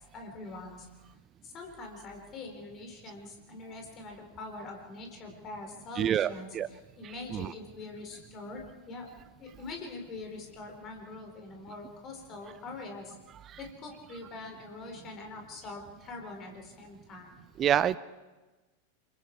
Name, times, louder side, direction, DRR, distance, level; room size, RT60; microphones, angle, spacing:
voice 1, 0.1-0.9 1.4-9.1 9.4-13.2 13.6-17.4, left 3 dB, 30° left, 3 dB, 4.4 m, -44 dB
voice 2, 6.0-6.7 7.3-7.5 17.6-18.0, right 10 dB, 30° right, 18 dB, 0.6 m, -27 dB
26.5 x 22.5 x 4.8 m, 1.2 s
figure-of-eight pair, 90°, 0 cm